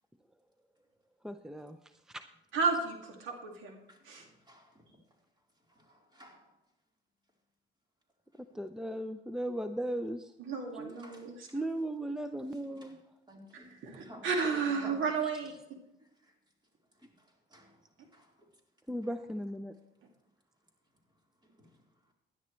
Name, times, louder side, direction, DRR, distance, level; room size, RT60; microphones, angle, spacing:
voice 1, 1.2-1.8 8.5-10.3 10.7-10.9 11.5-13.0 18.9-19.7, right 1 dB, 5° right, 9 dB, 0.6 m, -36 dB
voice 2, 2.5-3.8 4.0-4.3 10.4-11.5 13.5-15.5, right 5 dB, 80° right, 2 dB, 2.3 m, -33 dB
voice 3, 3.9-5.0 5.7-6.5 8.3-8.6 10.9-11.6 12.5-13.0 13.3-14.3 14.7-15.0 16.0-16.3 17.0-17.8 18.1-18.5 21.4-21.8, equal, 20° right, -1 dB, 4.2 m, -55 dB
16.0 x 11.0 x 3.2 m, 0.87 s
cardioid pair, 90°, 20 cm